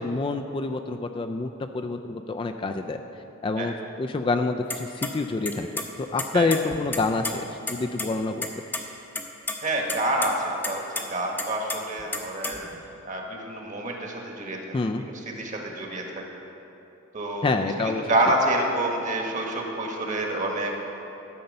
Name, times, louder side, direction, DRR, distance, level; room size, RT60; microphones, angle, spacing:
voice 1, 0.0-1.5 1.7-3.0 3.4-8.5 14.7-15.0 17.4-18.0, left 3 dB, 25° left, 5 dB, 0.3 m, -27 dB
sound 1, 4.7-5.1 5.4-5.9 6.2-7.3 7.7-7.8 8.0-8.1 8.4-8.8 9.1-9.6 9.9-10.3 10.6-11.0 11.4-12.8, left 2 dB, 10° left, 0.7 m, -30 dB
voice 2, 9.6-10.4 10.7-12.6 13.0-14.6 15.0-15.1 15.4-16.0 17.1-17.5 17.8-20.7, right 1 dB, 40° right, 0 dB, 1.4 m, -27 dB
13.0 x 6.8 x 5.4 m, 3.0 s
head